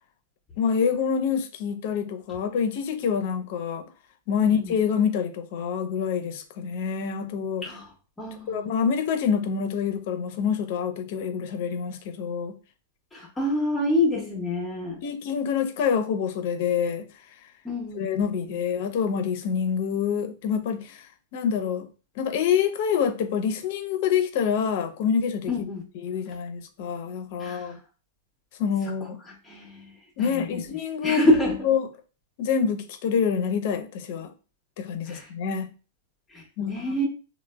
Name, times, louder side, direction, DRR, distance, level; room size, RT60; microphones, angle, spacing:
voice 1, 0.6-3.8 4.3-7.6 8.5-12.5 14.2-14.3 15.0-17.1 17.9-21.0 21.3-21.9 22.2-25.5 25.9-27.8 28.6-29.2 30.2-31.3 31.6-31.8 32.4-34.3 34.8-35.7 36.6-36.7, left 7 dB, 55° left, 0.5 m, -26 dB
voice 2, 4.4-4.7 7.6-7.9 8.2-8.7 13.1-15.0 17.6-18.5 25.5-25.8 27.4-27.8 29.4-29.9 30.2-30.6 31.0-31.6 35.0-35.3 36.3-37.1, left 1 dB, 10° left, 0.7 m, -27 dB
3.2 x 2.0 x 2.2 m
hypercardioid pair, 125°, 0 cm